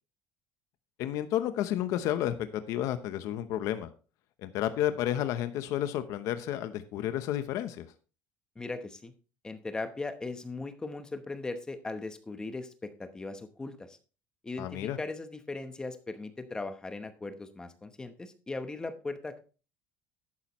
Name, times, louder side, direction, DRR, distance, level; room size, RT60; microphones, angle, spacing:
voice 1, 1.0-3.9 4.4-7.9 14.6-15.0, left 11 dB, 60° left, 11 dB, 0.8 m, -31 dB
voice 2, 8.6-9.1 9.4-14.0 14.4-19.4, left 3 dB, 10° left, 10 dB, 0.9 m, -38 dB
11.5 x 8.9 x 3.1 m, 0.35 s
cardioid pair, 160°, 6 cm